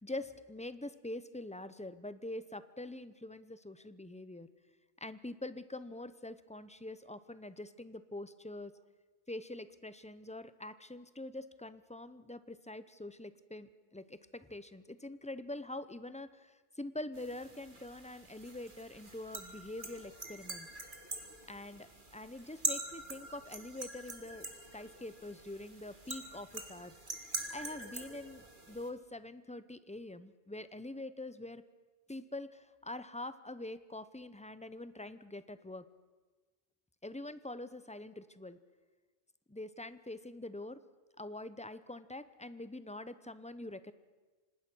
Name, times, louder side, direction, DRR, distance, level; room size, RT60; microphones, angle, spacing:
voice 1, 0.0-4.5 5.0-8.7 9.3-20.7 21.5-21.9 22.1-24.5 24.7-26.9 27.5-31.6 32.1-35.9 37.0-38.6 39.5-40.8 41.2-43.9, left 2 dB, 10° left, 13 dB, 0.5 m, -45 dB
sound 1, 17.1-28.9, right 2 dB, 40° right, 2.3 m, -44 dB
26.0 x 19.5 x 6.2 m, 1.3 s
omnidirectional pair, 1.2 m